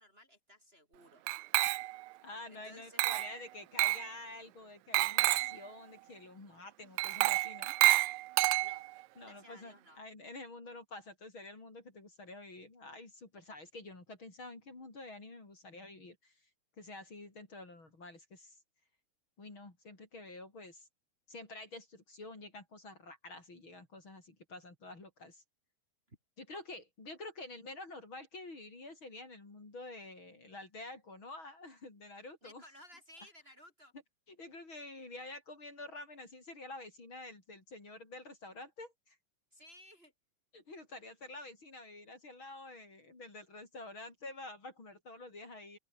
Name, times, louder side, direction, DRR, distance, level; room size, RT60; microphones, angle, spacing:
voice 1, 0.0-1.8 2.5-3.3 8.6-8.9 9.2-10.0 26.1-26.2 32.4-33.9 39.5-40.1, equal, 15° right, 5.2 m, -57 dB
Glass, 1.3-2.1 3.0-3.4 3.8-4.1 4.9-5.6 7.0-9.0, right 19 dB, 80° right, 1.9 m, -29 dB
voice 2, 2.2-7.7 9.2-16.4 16.8-18.6 19.4-20.9 21.3-25.4 26.4-32.6 34.3-39.2 40.5-45.8, left 2 dB, 40° left, 5.8 m, -49 dB
open air
omnidirectional pair, 3.6 m